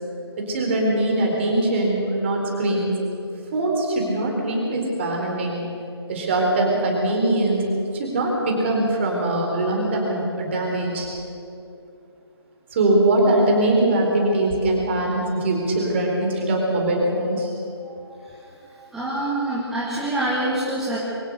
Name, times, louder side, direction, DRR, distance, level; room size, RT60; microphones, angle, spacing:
voice 1, 0.4-2.9 3.5-5.6 6.1-7.6 7.9-11.1 12.7-17.5, right 1 dB, 25° right, 0 dB, 4.2 m, -22 dB
voice 2, 18.7-21.0, right 1 dB, 5° right, -7 dB, 1.6 m, -26 dB
23.0 x 18.0 x 6.7 m, 2.6 s
figure-of-eight pair, 150°, 14 cm